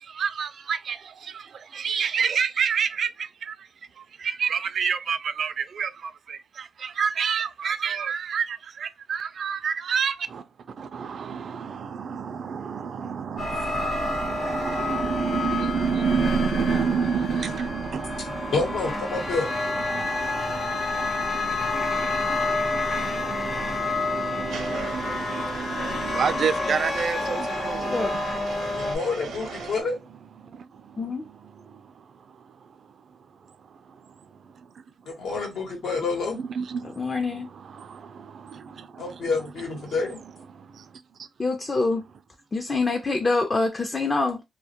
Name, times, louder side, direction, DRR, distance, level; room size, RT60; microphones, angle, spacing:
voice 1, 0.2-1.0 1.8-3.1 4.4-5.5 5.8-5.9 7.0-8.5 8.8-10.1 11.0-18.7 19.9-20.0 22.0-22.4 22.7-28.1 36.6-36.7, right 6 dB, 60° right, 0.3 m, -28 dB
sound 1, 13.4-29.0, left 3 dB, 50° left, 0.9 m, -29 dB
voice 2, 18.5-19.5 28.7-30.0 35.1-36.4 39.0-40.2, left 4 dB, 80° left, 1.0 m, -28 dB
sound 2, 24.5-29.8, right 3 dB, 85° right, 0.7 m, -39 dB
voice 3, 37.0-37.5 41.4-42.0 42.5-44.4, left 3 dB, 30° left, 0.4 m, -25 dB
2.2 x 2.1 x 2.7 m
cardioid pair, 95°, 0 cm